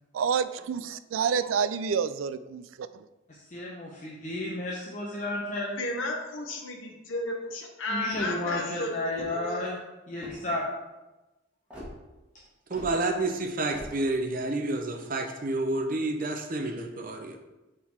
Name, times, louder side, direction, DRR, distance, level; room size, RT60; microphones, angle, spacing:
voice 1, 0.1-3.0, right 6 dB, 90° right, 14 dB, 0.3 m, -28 dB
voice 2, 3.3-5.8 7.9-9.8 10.1-10.6, left 1 dB, 40° left, -4 dB, 0.8 m, -32 dB
voice 3, 5.8-8.9 9.1-9.7, left 2 dB, 80° left, 1 dB, 0.9 m, -33 dB
sound 1, 8.0-8.5 9.1-9.5 10.2-10.6 11.7-11.9 12.7-12.9 13.7-13.9, equal, 5° right, 1.6 m, -43 dB
voice 4, 12.7-17.4, right 2 dB, 45° right, 4 dB, 0.7 m, -29 dB
6.4 x 3.8 x 4.4 m, 1.1 s
head